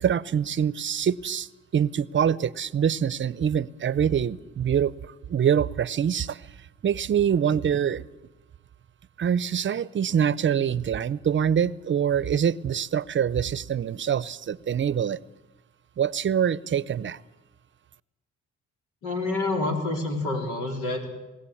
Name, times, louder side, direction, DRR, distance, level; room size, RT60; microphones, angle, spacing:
voice 1, 0.0-1.5 1.7-4.9 5.3-6.4 6.8-8.0 9.2-15.2 16.0-17.2, right 8 dB, 40° right, 19 dB, 0.7 m, -24 dB
voice 2, 19.0-21.1, left 2 dB, 90° left, 3 dB, 4.1 m, -28 dB
20.5 x 16.5 x 8.6 m, 1.1 s
cardioid pair, 90°, 30 cm